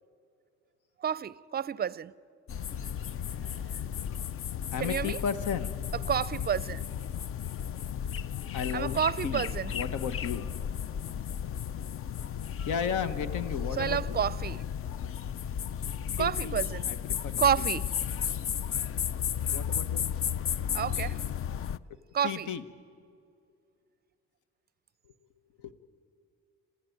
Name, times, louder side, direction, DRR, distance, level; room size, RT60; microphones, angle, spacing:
voice 1, 1.0-2.1 4.8-5.2 6.1-6.8 8.7-9.7 13.8-14.6 16.2-16.9 17.4-17.9 20.7-21.2 22.1-22.5, right 8 dB, 35° right, 0.5 m, -29 dB
sound 1, 2.5-21.8, left 8 dB, 45° left, 0.5 m, -34 dB
voice 2, 4.7-5.8 8.5-10.5 12.6-14.2 16.2-16.6 16.9-17.7 19.5-20.0 22.2-22.7 25.6-25.7, left 7 dB, 80° left, 1.2 m, -34 dB
27.0 x 15.5 x 9.3 m
cardioid pair, 90°, 30 cm